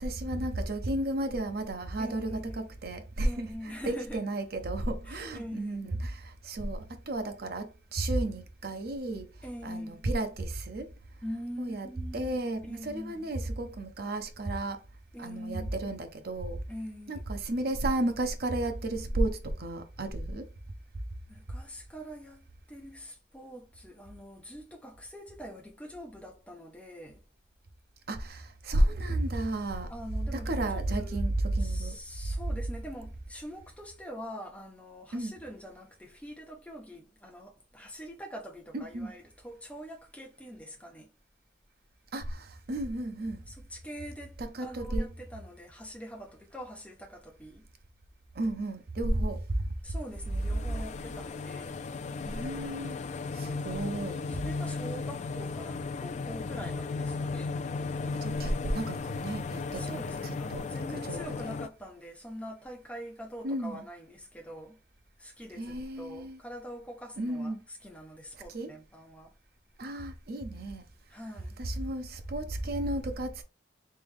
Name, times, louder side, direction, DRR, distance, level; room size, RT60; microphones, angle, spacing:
voice 1, 0.0-3.5 3.9-9.3 9.6-10.9 11.6-11.9 12.1-14.8 15.2-16.6 17.1-20.4 28.1-29.9 30.3-31.9 35.1-35.3 38.7-39.1 42.1-43.4 44.4-45.1 48.4-49.4 52.2-53.0 53.4-54.2 58.2-60.0 60.5-60.7 61.1-61.5 63.4-63.8 65.6-66.4 67.2-67.6 68.5-68.7 69.8-70.8 71.6-73.4, right 1 dB, 55° right, 0.7 m, -32 dB
voice 2, 2.0-2.7 3.2-4.2 5.1-5.9 9.4-10.1 11.2-13.3 15.1-15.7 16.7-17.3 21.3-27.2 29.9-31.3 31.6-41.1 43.5-47.7 49.8-51.8 54.4-57.5 59.7-64.8 65.2-69.3 71.1-71.6, equal, 10° left, 1.0 m, -44 dB
sound 1, 50.2-61.7, left 4 dB, 40° left, 0.3 m, -35 dB
3.4 x 3.3 x 3.5 m
head